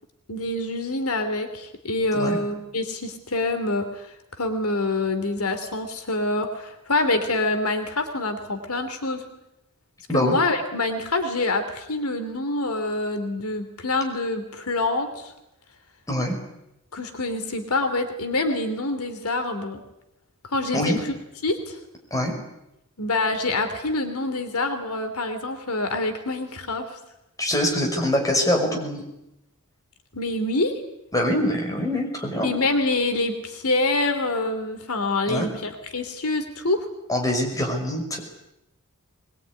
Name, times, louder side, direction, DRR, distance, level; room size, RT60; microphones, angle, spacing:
voice 1, 0.3-9.2 10.1-15.3 16.9-19.8 20.4-21.0 21.4-21.8 23.0-27.0 30.1-30.8 31.4-31.5 32.4-36.9, left 2 dB, 80° left, 7 dB, 3.0 m, -26 dB
voice 2, 16.1-16.4 20.7-21.0 22.1-22.4 27.4-29.0 31.1-32.5 35.3-35.5 37.1-38.2, left 1 dB, 15° left, 2 dB, 5.7 m, -24 dB
22.5 x 21.5 x 9.7 m, 0.87 s
head